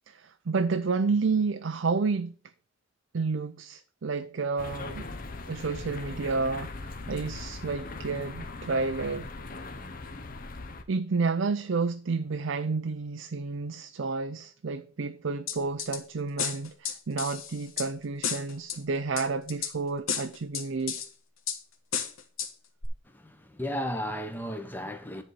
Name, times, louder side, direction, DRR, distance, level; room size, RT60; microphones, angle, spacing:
voice 1, 0.1-2.3 3.1-5.1 5.5-9.3 10.9-21.0, right 4 dB, 65° right, 0.5 m, -30 dB
sound 1, 4.6-10.8, left 3 dB, 45° left, 0.9 m, -40 dB
sound 2, 15.5-16.0 16.4-17.9 18.2-18.8 19.2-19.7 20.1-21.1 21.5-21.6 21.9-22.5 22.8-22.9, left 8 dB, 85° left, 1.4 m, -32 dB
voice 2, 23.2-25.2, equal, 10° left, 1.2 m, -34 dB
10.5 x 4.2 x 6.7 m
head